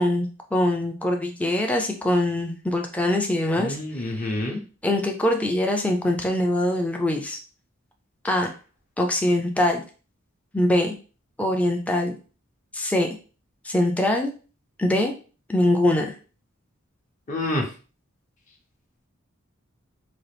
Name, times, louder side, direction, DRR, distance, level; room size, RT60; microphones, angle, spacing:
voice 1, 0.0-4.3 4.8-7.4 8.2-8.5 9.0-9.8 10.5-10.9 11.4-12.1 12.7-13.1 13.6-14.3 14.8-15.1 15.5-16.1, left 1 dB, 5° left, 2 dB, 0.5 m, -23 dB
voice 2, 3.6-4.6 17.3-17.7, left 1 dB, 35° left, 1 dB, 0.8 m, -27 dB
3.9 x 2.4 x 3.3 m, 0.36 s
head